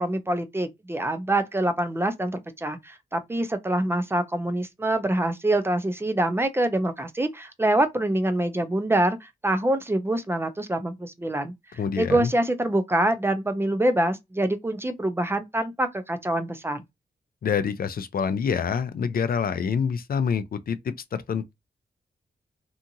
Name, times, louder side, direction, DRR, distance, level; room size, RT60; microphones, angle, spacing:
voice 1, 0.0-11.5 12.0-16.8, right 1 dB, 15° right, 0.4 m, -25 dB
voice 2, 11.8-12.3 17.4-21.5, left 6 dB, 55° left, 0.4 m, -26 dB
2.8 x 2.4 x 2.6 m
wide cardioid pair, 150°, 18 cm